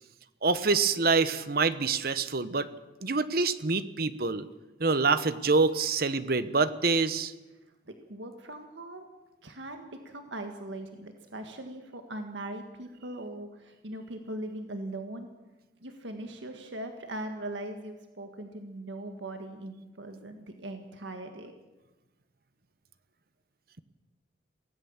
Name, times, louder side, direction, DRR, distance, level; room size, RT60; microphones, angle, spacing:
voice 1, 0.4-2.7 3.0-4.4 4.8-7.3, right 4 dB, 55° right, 13 dB, 1.1 m, -26 dB
voice 2, 7.9-9.1 9.4-15.3 15.8-21.5, right 1 dB, 80° right, 5 dB, 1.8 m, -40 dB
23.5 x 17.5 x 7.3 m, 1.1 s
head